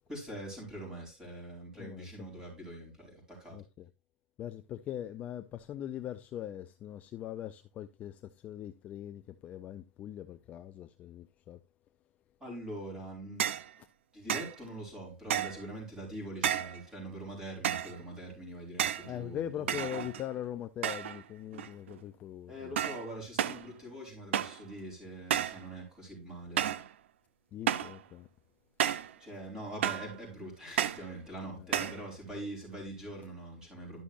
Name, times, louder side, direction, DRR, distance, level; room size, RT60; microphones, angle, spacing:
voice 1, 0.1-3.6 12.4-13.6 14.1-20.0 22.5-26.7 29.2-34.0, right 1 dB, 10° right, 4.7 m, -43 dB
voice 2, 3.5-3.9 4.4-11.6 19.0-22.8 27.5-28.3 31.6-31.7, left 11 dB, 25° left, 0.4 m, -41 dB
sound 1, 13.4-13.7 14.3-14.6 15.3-15.7 16.4-16.8 17.6-18.0 18.8-19.1 19.7-20.3 20.8-21.2 21.5-22.0 22.8-23.1 23.4-23.7 24.3-24.6 25.3-25.6 26.6-26.9 27.7-28.0 28.8-29.1 29.8-30.1 30.8-31.1 31.7-32.0, right 10 dB, 90° right, 0.7 m, -32 dB
11.5 x 6.2 x 2.5 m
supercardioid pair, 160°, 6 cm